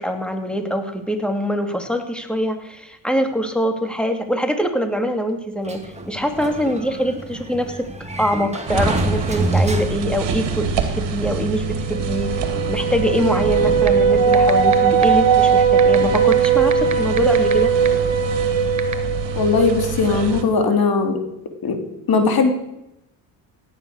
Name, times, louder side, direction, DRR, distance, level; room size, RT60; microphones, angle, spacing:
voice 1, 0.0-7.9 8.2-17.7, equal, ahead, 5 dB, 2.6 m, -24 dB
Sliding door, 5.7-10.3, right 1 dB, 15° right, 2.4 m, -26 dB
sound 1, 8.7-20.4, right 6 dB, 70° right, 2.5 m, -19 dB
sound 2, 13.9-14.0 14.3-14.7 15.0-15.1 15.8-17.5 17.9-18.0 18.8-18.9, right 7 dB, 40° right, 1.6 m, -25 dB
voice 2, 19.4-21.2 21.6-21.8 22.1-22.5, left 4 dB, 55° left, 5 dB, 3.0 m, -18 dB
17.0 x 10.0 x 6.6 m, 0.87 s
supercardioid pair, 75°, 44 cm